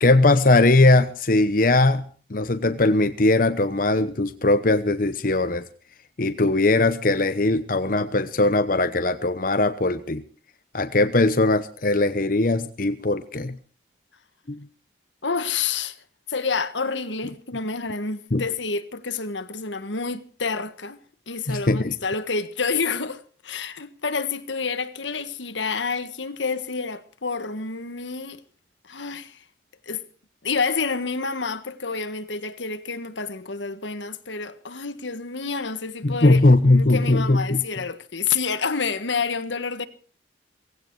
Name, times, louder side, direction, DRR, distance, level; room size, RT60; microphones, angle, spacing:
voice 1, 0.0-5.6 6.2-10.2 10.7-13.6 14.5-14.6 18.3-18.4 21.5-21.9 36.0-37.6, left 2 dB, 50° left, 0.9 m, -20 dB
voice 2, 15.2-16.0 16.3-21.0 21.3-28.4 28.9-29.4 29.8-30.0 30.4-39.9, left 5 dB, 80° left, 1.5 m, -28 dB
18.0 x 16.5 x 4.7 m
head